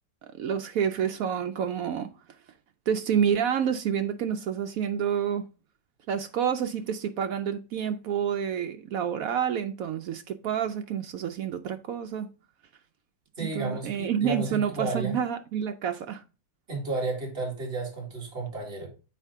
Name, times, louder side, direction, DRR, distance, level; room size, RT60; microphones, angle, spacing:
voice 1, 0.3-2.1 2.9-5.4 6.1-12.3 13.6-16.2, right 8 dB, 85° right, 0.7 m, -28 dB
voice 2, 13.4-15.2 16.7-18.9, right 3 dB, 30° right, 2.3 m, -32 dB
8.2 x 4.3 x 3.5 m
omnidirectional pair, 2.0 m